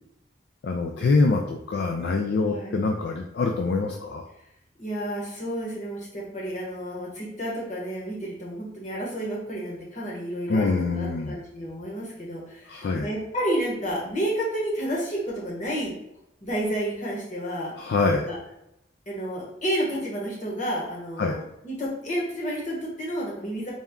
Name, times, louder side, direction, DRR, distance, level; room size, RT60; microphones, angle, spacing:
voice 1, 0.6-4.2 10.5-11.4 12.7-13.1 17.8-18.3 21.2-21.4, left 3 dB, 60° left, 2 dB, 0.3 m, -24 dB
voice 2, 2.4-2.8 4.8-15.9 16.4-17.7 18.1-18.4 19.1-23.7, equal, 40° left, -4 dB, 1.1 m, -31 dB
4.1 x 2.3 x 3.6 m, 0.82 s
head